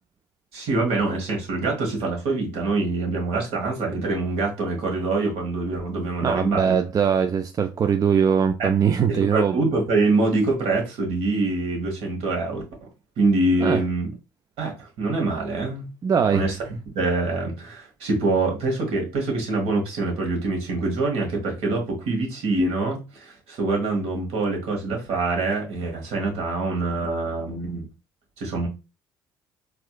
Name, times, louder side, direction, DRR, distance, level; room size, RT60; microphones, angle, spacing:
voice 1, 0.5-6.8 8.6-8.7 9.1-12.6 13.2-14.1 14.6-15.9 16.3-16.6 16.9-27.9 28.4-28.7, right 3 dB, 60° right, 1.4 m, -25 dB
voice 2, 6.2-9.6 13.6-13.8 16.0-16.4, right 7 dB, 30° right, 0.4 m, -21 dB
4.2 x 2.4 x 2.3 m
hypercardioid pair, 55°, 11 cm